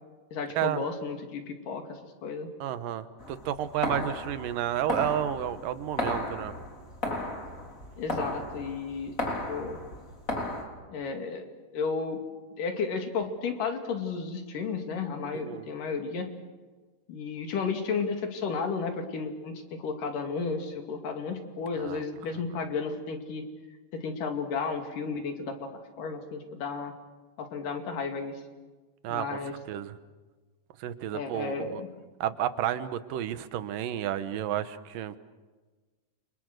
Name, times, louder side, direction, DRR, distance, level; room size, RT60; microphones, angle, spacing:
voice 1, 0.3-2.5 8.0-9.1 9.5-9.8 10.9-11.4 11.7-12.2 12.6-16.3 17.1-23.5 23.9-25.7 26.0-26.9 27.4-28.4 29.1-29.5 31.1-31.9, left 5 dB, 80° left, 5 dB, 4.1 m, -33 dB
voice 2, 2.6-6.5 15.3-15.7 21.8-22.0 29.0-29.3 29.7-30.0 30.8-31.8 32.2-35.1, right 11 dB, 90° right, 12 dB, 2.8 m, -31 dB
sound 1, 3.2-10.6, left 2 dB, 25° left, 3.8 m, -35 dB
29.5 x 25.5 x 6.7 m, 1.3 s
omnidirectional pair, 3.8 m